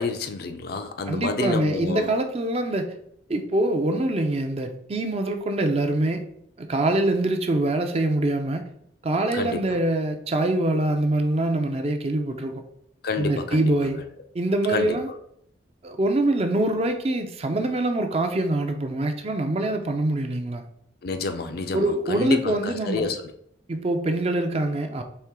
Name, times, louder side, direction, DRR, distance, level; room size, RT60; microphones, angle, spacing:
voice 1, 0.0-2.1 9.3-9.8 13.0-13.9 14.7-15.1 21.0-23.3, left 4 dB, 55° left, 7 dB, 0.5 m, -29 dB
voice 2, 1.1-2.9 3.3-6.2 6.6-8.6 9.0-12.6 13.2-14.0 14.3-15.1 15.8-20.7 21.7-23.1 23.7-25.0, right 1 dB, 30° right, 6 dB, 0.5 m, -24 dB
4.4 x 3.3 x 3.6 m, 0.71 s
head